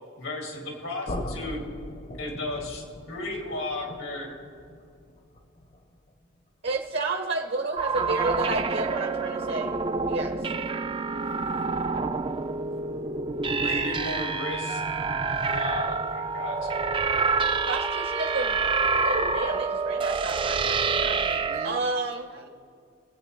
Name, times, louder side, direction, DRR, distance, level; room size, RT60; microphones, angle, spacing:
voice 1, 0.2-1.6 2.2-4.4 13.6-15.2 15.5-16.7, left 2 dB, 90° left, 0 dB, 2.2 m, -35 dB
sound 1, 1.1-7.0, left 1 dB, 35° left, 0.7 m, -40 dB
voice 2, 6.6-9.7 10.1-10.3 17.7-18.6 19.0-21.2 21.6-22.4, right 3 dB, 55° right, 3 dB, 0.8 m, -31 dB
sound 2, 7.8-21.7, right 4 dB, 25° right, 0.4 m, -27 dB
voice 3, 12.4-13.0 20.9-21.9 22.3-22.5, right 2 dB, 80° right, 4 dB, 1.6 m, -46 dB
22.0 x 8.1 x 3.1 m, 2.3 s
head